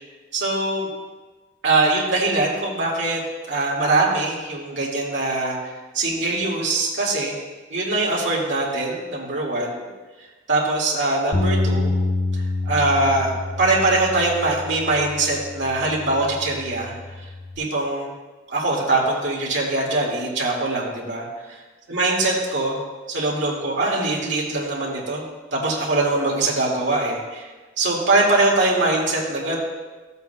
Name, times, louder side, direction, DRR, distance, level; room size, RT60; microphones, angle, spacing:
voice 1, 0.3-0.9 1.6-3.2 3.5-5.6 5.9-7.3 7.7-9.8 10.5-11.9 12.7-16.9 17.6-18.1 18.5-21.3 21.9-22.8 23.1-25.2 25.5-27.4 27.8-29.6, right 2 dB, 80° right, -3 dB, 2.1 m, -22 dB
Bass guitar, 11.3-17.6, left 2 dB, 75° left, 1.1 m, -27 dB
14.0 x 8.0 x 2.2 m, 1.3 s
head